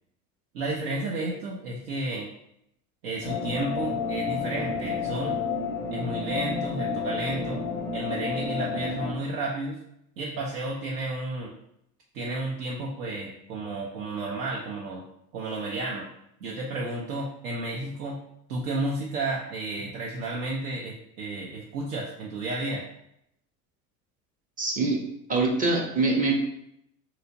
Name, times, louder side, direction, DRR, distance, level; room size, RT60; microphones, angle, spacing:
voice 1, 0.5-2.3 3.0-5.4 5.9-7.6 7.9-9.8 10.2-11.5 12.1-15.1 15.3-16.1 16.4-18.2 18.5-22.8, right 2 dB, 65° right, -3 dB, 0.7 m, -32 dB
sound 1, 3.2-9.1, left 4 dB, 25° left, 0.5 m, -30 dB
voice 2, 24.6-25.0 25.3-26.3, right 3 dB, 15° right, 0 dB, 0.6 m, -24 dB
3.1 x 2.9 x 2.6 m, 0.77 s
hypercardioid pair, 80°, 49 cm